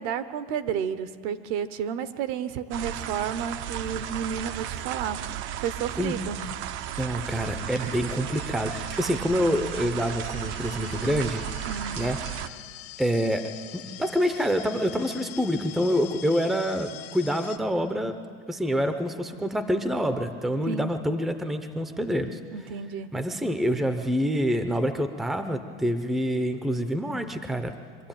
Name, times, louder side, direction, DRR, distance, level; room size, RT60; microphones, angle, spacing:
voice 1, 0.0-6.4 7.8-7.9 11.6-12.0 20.6-20.9 22.5-23.1, right 8 dB, 55° right, 13 dB, 1.0 m, -31 dB
sound 1, 2.7-12.5, right 10 dB, 40° right, 0.7 m, -34 dB
voice 2, 7.0-11.4 12.0-12.6 13.0-18.2 18.5-22.4 23.1-27.8, equal, ahead, 9 dB, 0.6 m, -27 dB
sound 2, 7.6-17.6, left 14 dB, 65° left, 1.4 m, -45 dB
23.5 x 12.5 x 8.9 m, 2.1 s
supercardioid pair, 145°, 32 cm